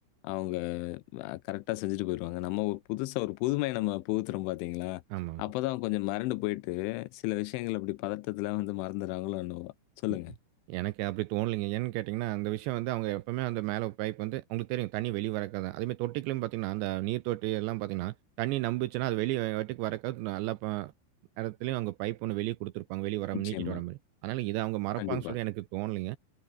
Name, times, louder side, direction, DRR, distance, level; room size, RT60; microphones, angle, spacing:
voice 1, 0.2-5.0 5.4-9.7 10.0-10.3 23.3-23.8 25.0-25.4, left 20 dB, 85° left, 3.0 m, -33 dB
voice 2, 5.1-5.4 10.7-20.9 21.4-26.2, right 18 dB, 80° right, 2.7 m, -33 dB
omnidirectional pair, 5.8 m